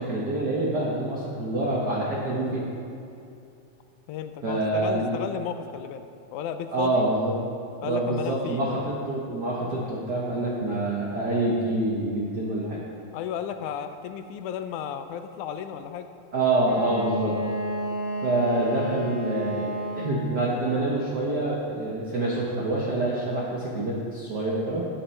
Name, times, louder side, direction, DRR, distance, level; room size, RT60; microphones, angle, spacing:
voice 1, 0.0-2.7 4.4-5.1 6.7-7.3 7.8-12.8 16.3-17.4 18.2-19.7 20.0-24.9, right 2 dB, 65° right, -5 dB, 1.0 m, -26 dB
voice 2, 4.1-7.0 7.8-8.8 13.1-16.1, left 8 dB, 85° left, 9 dB, 2.0 m, -34 dB
Wind instrument woodwind instrument, 16.6-20.4, equal, 35° right, 1.1 m, -31 dB
12.5 x 10.0 x 3.3 m, 2.7 s
omnidirectional pair, 3.5 m